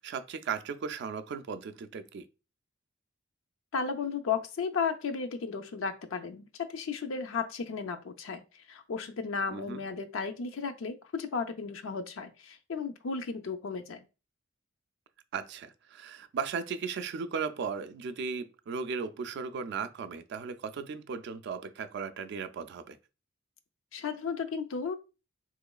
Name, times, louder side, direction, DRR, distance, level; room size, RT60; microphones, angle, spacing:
voice 1, 0.0-2.2 9.5-9.8 15.3-23.0, right 5 dB, 55° right, 0.3 m, -36 dB
voice 2, 3.7-8.4 8.7-14.0 23.9-25.0, left 5 dB, 70° left, 0.5 m, -34 dB
3.7 x 3.1 x 2.3 m
head